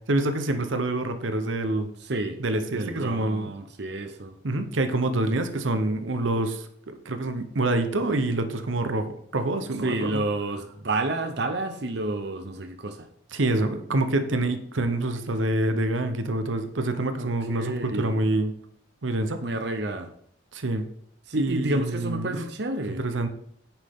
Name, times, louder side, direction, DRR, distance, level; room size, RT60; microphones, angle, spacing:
voice 1, 0.1-1.9 2.4-3.5 4.4-10.2 13.3-18.5 19.0-19.4 20.5-20.8 21.4-22.4 23.0-23.3, right 2 dB, 85° right, 9 dB, 0.9 m, -26 dB
voice 2, 2.0-2.4 2.7-4.3 9.8-13.1 17.2-18.1 19.4-20.1 21.3-23.0, right 2 dB, 60° right, 7 dB, 0.8 m, -30 dB
9.2 x 7.2 x 3.7 m, 0.66 s
head